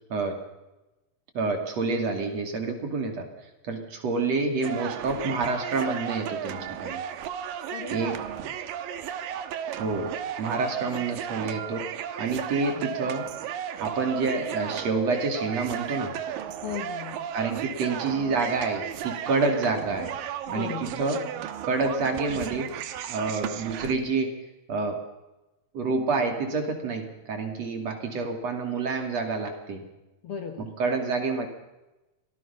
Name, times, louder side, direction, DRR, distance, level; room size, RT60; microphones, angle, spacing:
voice 1, 1.4-3.3 3.7-7.0 7.9-8.2 9.8-10.1 10.4-11.9 12.2-13.3 13.8-16.2 17.3-20.2 20.5-21.2 21.6-22.7 23.1-24.3 24.7-25.0 25.7-29.8 30.6-31.5, right 4 dB, 50° right, 5 dB, 3.6 m, -28 dB
sound 1, 4.6-23.9, right 9 dB, 80° right, 2.9 m, -34 dB
voice 2, 7.7-8.0 8.4-8.6 10.9-11.2 16.6-17.3 20.5-21.0 30.2-30.7, left 7 dB, 55° left, 6 dB, 1.8 m, -37 dB
26.0 x 18.0 x 5.8 m, 1.0 s
omnidirectional pair, 4.0 m